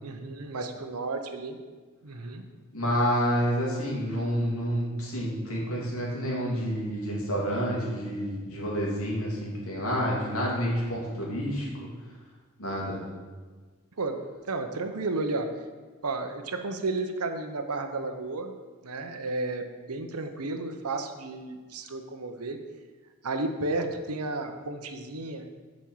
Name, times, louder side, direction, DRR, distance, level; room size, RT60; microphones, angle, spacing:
voice 1, 0.0-1.6 2.0-2.4 14.0-15.5 16.0-18.6 18.8-22.6 23.2-25.5, right 2 dB, 90° right, 6 dB, 0.9 m, -32 dB
voice 2, 2.7-11.7 12.6-13.0, equal, 70° left, -4 dB, 2.8 m, -29 dB
7.5 x 5.4 x 7.2 m, 1.4 s
head